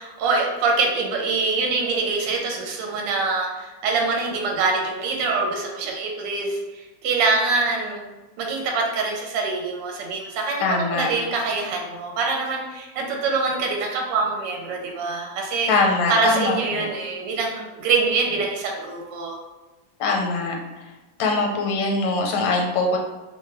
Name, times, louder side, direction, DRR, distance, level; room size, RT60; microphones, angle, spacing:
voice 1, 0.0-8.0 8.4-15.7 16.1-19.4 22.4-22.5, right 3 dB, 75° right, 0 dB, 1.2 m, -24 dB
voice 2, 10.6-11.1 15.7-16.9 20.0-20.5 21.2-23.0, left 3 dB, 85° left, 1 dB, 1.4 m, -22 dB
3.0 x 2.2 x 3.3 m, 1.1 s
omnidirectional pair, 2.0 m